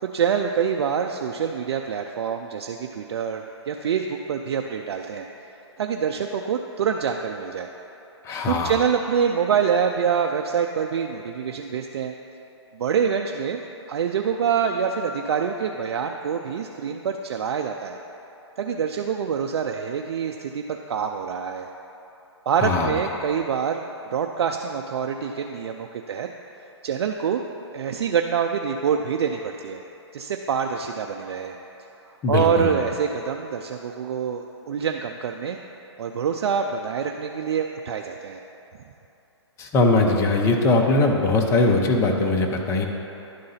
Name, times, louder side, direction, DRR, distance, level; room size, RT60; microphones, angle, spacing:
voice 1, 0.0-5.3 5.8-7.7 8.5-12.1 12.7-13.6 13.9-18.0 18.6-21.7 22.5-23.8 24.1-26.3 26.8-27.4 27.7-29.8 30.1-31.6 32.3-35.6 36.0-38.4, right 7 dB, 60° right, 3 dB, 0.4 m, -25 dB
voice 2, 8.2-8.7 22.6-22.9 32.2-32.7 39.6-42.9, left 2 dB, 20° left, 2 dB, 0.7 m, -20 dB
11.0 x 3.8 x 5.6 m, 3.0 s
hypercardioid pair, 135°, 15 cm